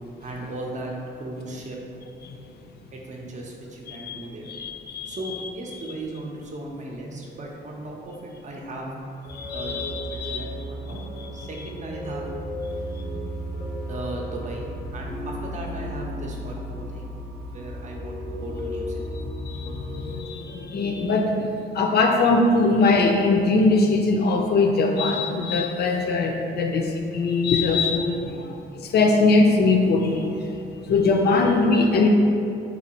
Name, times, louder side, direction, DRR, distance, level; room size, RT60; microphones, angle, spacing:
voice 1, 0.2-1.8 2.9-4.5 5.1-9.0 9.5-11.0 11.3-12.3 13.9-17.1 17.5-19.2 28.2-28.4, right 2 dB, 40° right, -1 dB, 0.6 m, -37 dB
voice 2, 4.5-5.2 9.3-10.5 10.9-11.5 19.4-21.3 21.7-28.2 28.8-30.4 30.9-32.1, left 3 dB, 55° left, 2 dB, 0.5 m, -21 dB
sound 1, 9.2-20.2, equal, 10° left, 0.6 m, -34 dB
4.1 x 2.6 x 2.9 m, 2.6 s
cardioid pair, 90°, 20 cm